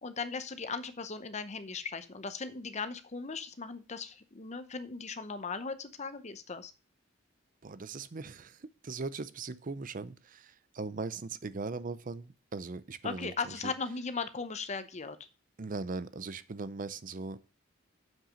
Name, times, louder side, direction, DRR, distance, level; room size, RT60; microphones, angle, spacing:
voice 1, 0.0-6.7 13.0-15.2, left 4 dB, 35° left, 11 dB, 0.7 m, -38 dB
voice 2, 7.6-13.7 15.6-17.4, right 3 dB, 45° right, 16 dB, 0.6 m, -39 dB
7.5 x 6.0 x 6.3 m, 0.33 s
head